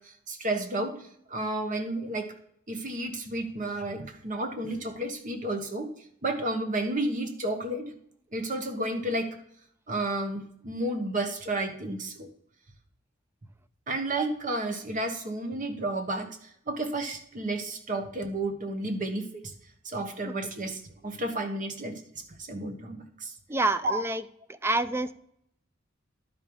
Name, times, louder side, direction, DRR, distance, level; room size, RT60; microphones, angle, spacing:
voice 1, 0.3-1.0 1.3-2.3 2.7-5.9 6.2-7.9 8.3-9.3 9.9-12.3 13.9-16.3 16.7-19.4 19.8-22.0 22.5-23.3 23.8-24.0, right 2 dB, 40° right, 6 dB, 1.3 m, -31 dB
voice 2, 23.5-24.2 24.6-25.1, right 2 dB, 10° right, 13 dB, 0.4 m, -27 dB
11.5 x 5.3 x 4.7 m, 0.69 s
head